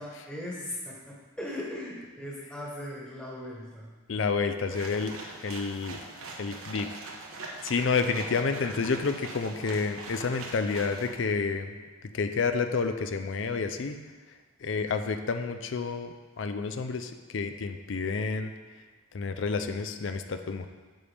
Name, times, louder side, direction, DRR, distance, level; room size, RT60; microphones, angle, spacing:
voice 1, 0.0-3.9, left 1 dB, 5° left, -5 dB, 1.3 m, -38 dB
voice 2, 4.1-6.0 6.3-6.9 7.6-11.8 12.1-14.0 14.6-18.5 19.1-20.7, left 4 dB, 60° left, 8 dB, 0.5 m, -29 dB
sound 1, 4.7-11.1, right 3 dB, 85° right, 1.2 m, -42 dB
9.1 x 7.1 x 3.4 m, 1.3 s
head